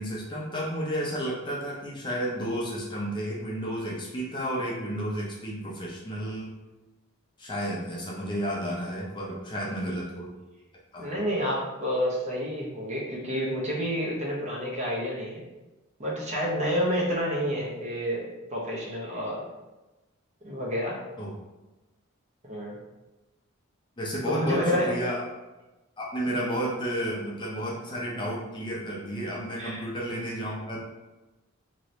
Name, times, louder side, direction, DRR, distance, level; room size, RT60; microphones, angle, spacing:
voice 1, 0.0-6.5 7.4-10.3 10.9-11.1 21.2-21.3 24.0-25.2 26.0-30.8, equal, 20° left, -4 dB, 0.5 m, -32 dB
voice 2, 11.0-15.4 16.0-18.3 18.5-19.4 20.4-21.0 22.4-22.8 24.3-24.9 29.6-29.8, equal, 35° right, -3 dB, 0.7 m, -29 dB
2.9 x 2.6 x 3.1 m, 1.1 s
head